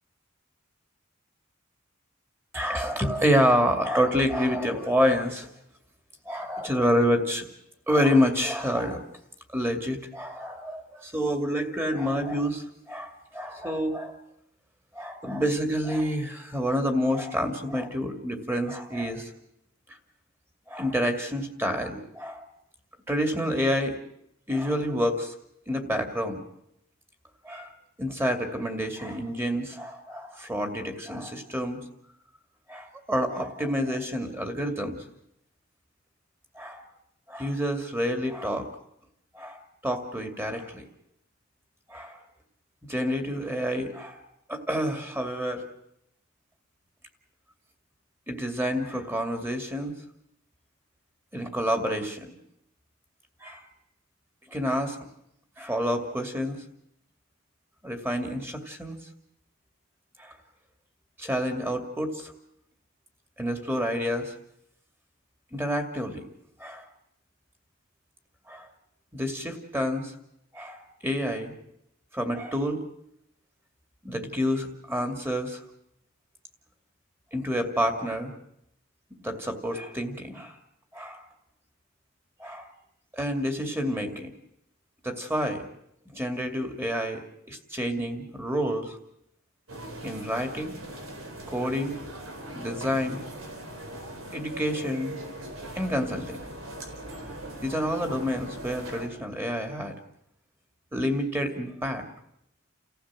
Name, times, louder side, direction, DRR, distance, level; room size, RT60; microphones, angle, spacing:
voice 1, 2.5-5.5 6.3-7.5 7.9-9.0 9.5-14.2 14.9-19.3 20.7-22.5 23.1-24.0 24.5-25.3 25.7-26.4 27.4-27.7 28.0-31.8 32.7-35.0 36.6-36.8 37.3-38.7 39.3-40.8 41.9-42.2 42.9-44.2 44.5-45.6 48.3-49.9 51.3-52.3 53.4-53.7 54.5-55.0 55.6-56.6 57.8-59.0 60.2-60.3 61.2-62.3 63.4-64.4 65.5-66.3 66.6-66.8 68.5-68.7 69.1-70.1 70.5-71.5 72.1-72.8 74.0-75.6 77.3-78.3 79.2-80.5 80.9-81.2 82.4-82.7 83.1-84.3 85.0-85.6 86.1-87.2 87.5-89.0 90.0-90.8 91.5-92.0 92.5-93.2 94.3-95.2 95.7-96.4 97.6-99.9 100.9-102.0, equal, 10° right, 6 dB, 2.5 m, -28 dB
sound 1, 89.7-99.1, right 1 dB, 80° right, 4.1 m, -40 dB
30.0 x 15.0 x 7.6 m, 0.78 s
head